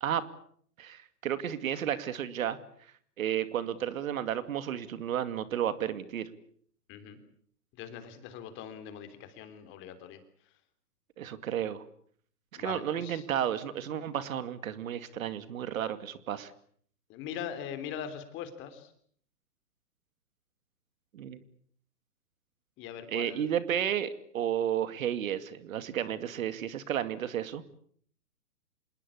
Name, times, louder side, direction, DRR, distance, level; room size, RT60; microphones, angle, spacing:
voice 1, 0.8-2.6 3.2-6.3 11.2-11.8 12.6-16.5 21.1-21.4 23.1-27.6, right 10 dB, 55° right, 12 dB, 2.4 m, -32 dB
voice 2, 7.7-10.2 12.6-13.2 17.1-18.9 22.8-23.6, left 9 dB, 25° left, 9 dB, 3.4 m, -41 dB
27.0 x 21.0 x 8.5 m, 0.62 s
hypercardioid pair, 145°, 48 cm